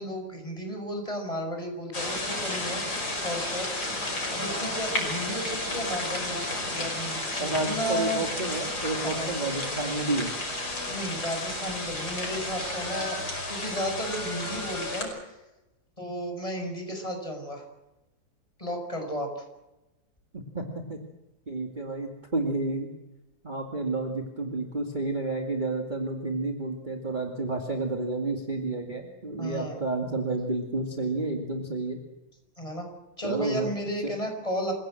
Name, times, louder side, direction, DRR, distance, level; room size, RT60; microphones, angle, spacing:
voice 1, 0.0-2.8 3.2-8.3 9.0-9.3 10.9-15.3 16.0-17.6 18.6-19.4 29.4-29.8 32.6-32.9 33.2-34.7, equal, 15° left, 3 dB, 6.1 m, -33 dB
sound 1, 1.9-15.0, left 2 dB, 55° left, 6.1 m, -32 dB
Singing, 4.0-6.8 7.9-11.1 12.1-15.2, equal, 5° right, 5.1 m, -42 dB
voice 2, 7.4-10.3 20.3-20.6 20.9-21.0 21.5-22.9 23.4-32.0 33.2-33.7 34.0-34.1, right 2 dB, 25° right, 2 dB, 2.3 m, -30 dB
27.5 x 16.5 x 7.8 m, 0.99 s
omnidirectional pair, 2.1 m